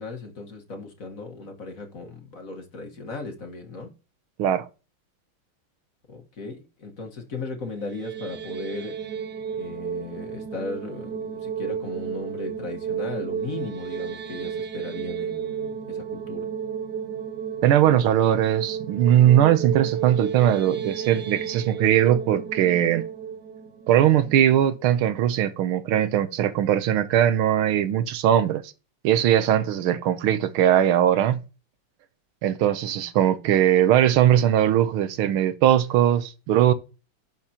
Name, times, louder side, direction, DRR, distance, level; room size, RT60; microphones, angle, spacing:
voice 1, 0.0-3.9 6.1-9.0 9.6-16.5, left 3 dB, 45° left, 1.7 m, -36 dB
sound 1, 7.7-24.9, right 7 dB, 60° right, 1.4 m, -33 dB
voice 2, 17.6-23.0 23.9-28.6 29.0-31.4 32.4-36.7, right 11 dB, 85° right, 1.7 m, -20 dB
11.5 x 7.1 x 2.9 m
omnidirectional pair, 2.3 m